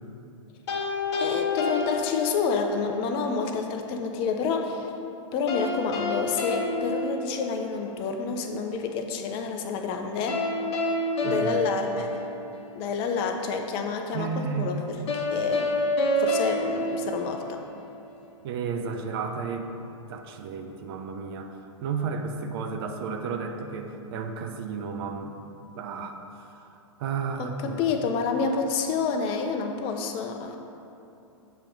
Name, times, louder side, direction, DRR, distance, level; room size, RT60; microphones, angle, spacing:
sound 1, 0.7-2.8 5.5-7.9 10.3-12.8 15.1-17.9, left 2 dB, 55° left, 1.0 m, -28 dB
voice 1, 1.2-4.9 5.3-10.4 11.2-12.2 12.7-15.7 16.2-17.6 27.4-30.6, left 5 dB, 35° left, 4 dB, 0.6 m, -29 dB
voice 2, 11.2-11.6 14.1-14.8 18.4-21.5 21.8-26.2 27.0-27.8, right 5 dB, 45° right, 5 dB, 0.5 m, -33 dB
7.5 x 3.0 x 5.2 m, 2.8 s
hypercardioid pair, 125°, 17 cm